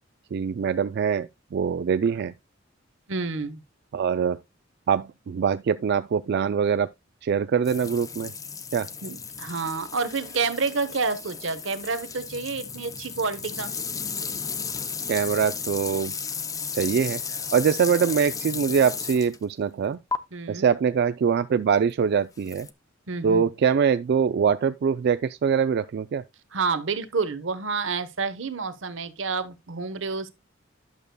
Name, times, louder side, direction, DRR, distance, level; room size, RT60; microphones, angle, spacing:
voice 1, 0.3-2.3 3.9-4.4 4.9-6.9 7.2-8.3 8.7-8.9 15.1-16.1 16.7-20.0 20.5-22.7 23.2-26.2, right 6 dB, 55° right, 0.3 m, -23 dB
voice 2, 3.1-3.6 9.0-13.7 20.3-20.7 23.1-23.5 26.5-30.3, right 4 dB, 75° right, 0.9 m, -29 dB
sound 1, 7.6-19.4 20.1-20.2 22.4-22.7, left 6 dB, 20° left, 0.5 m, -34 dB
11.0 x 6.6 x 2.2 m
head